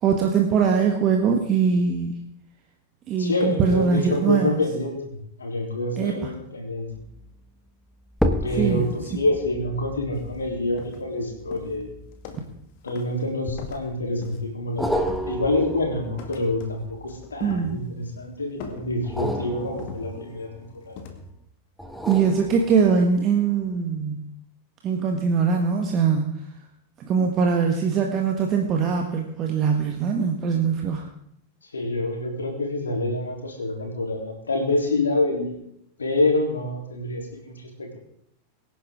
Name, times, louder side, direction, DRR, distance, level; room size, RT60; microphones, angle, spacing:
voice 1, 0.0-2.1 3.1-4.6 6.0-6.3 8.6-8.8 17.4-17.8 22.0-24.2 24.8-26.3 27.0-31.1, right 6 dB, 30° right, 2 dB, 1.6 m, -22 dB
voice 2, 3.2-6.9 8.4-12.0 12.8-21.0 31.6-35.6 36.0-38.0, left 2 dB, 75° left, 1 dB, 3.6 m, -27 dB
sound 1, 6.9-7.3 8.1-12.8 13.5-14.1 14.8-17.8 19.0-21.1 21.8-23.2 23.7-23.8, equal, ahead, 1.3 m, -32 dB
sound 2, 10.1-10.3 10.8-11.2 11.5-12.6 12.9-13.2 13.6-14.6 15.0-15.7 16.2-16.8 17.1-18.1 18.6-19.3 19.8-20.5 21.0-21.3, left 4 dB, 45° left, 2.1 m, -41 dB
24.0 x 10.0 x 3.8 m, 0.73 s
figure-of-eight pair, 90°, 0 cm